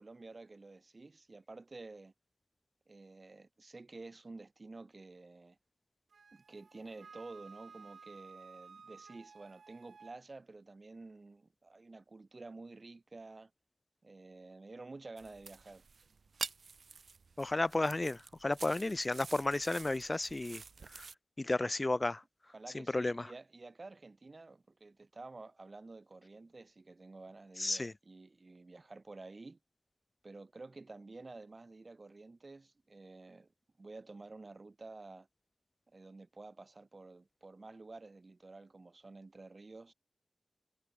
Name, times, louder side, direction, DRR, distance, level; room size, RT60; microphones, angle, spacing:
voice 1, 0.0-2.1 2.9-5.6 6.3-13.5 14.0-15.8 22.5-29.6 30.2-33.5 33.8-35.3 35.9-39.9, right 3 dB, 40° right, 6.2 m, -51 dB
Wind instrument woodwind instrument, 6.1-10.2, right 5 dB, 90° right, 5.4 m, -55 dB
sound 1, 15.2-21.1, right 4 dB, 70° right, 0.4 m, -48 dB
voice 2, 17.4-20.6 21.4-22.2 22.9-23.1 27.6-27.9, left 2 dB, 30° left, 0.3 m, -32 dB
wide cardioid pair, 85°, 0 cm